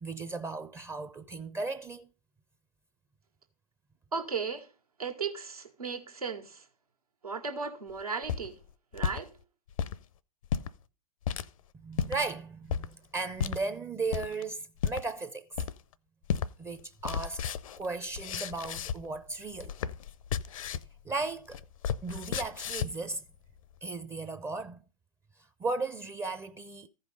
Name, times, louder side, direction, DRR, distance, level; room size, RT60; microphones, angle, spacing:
voice 1, 0.0-2.1 11.7-15.5 16.6-17.4 17.8-19.7 21.1-21.6 22.0-23.2 23.8-24.8 25.6-26.9, right 3 dB, 15° right, 0.5 m, -36 dB
voice 2, 4.1-4.7 5.0-6.6 7.2-8.6 8.9-9.4, right 5 dB, 85° right, 1.6 m, -36 dB
sound 1, 8.0-9.2 9.7-10.0 10.4-10.7 11.2-11.5 11.9-12.2 12.7-12.9 13.4-13.6 14.1-14.4 14.8-15.0 15.6-15.9 16.3-16.5 16.8-19.2 19.5-20.9 21.2-23.0, left 8 dB, 65° left, 0.6 m, -33 dB
14.5 x 5.5 x 5.1 m
figure-of-eight pair, 100°, 19 cm